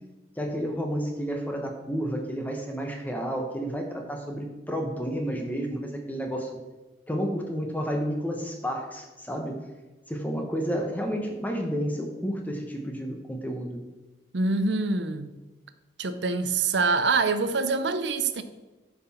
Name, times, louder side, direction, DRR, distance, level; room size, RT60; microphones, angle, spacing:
voice 1, 0.4-6.5 7.1-9.6 10.1-13.8, equal, 10° left, 1.1 m, -31 dB
voice 2, 14.3-15.3 16.0-18.4, right 4 dB, 70° right, 0.6 m, -25 dB
10.5 x 5.8 x 4.3 m
head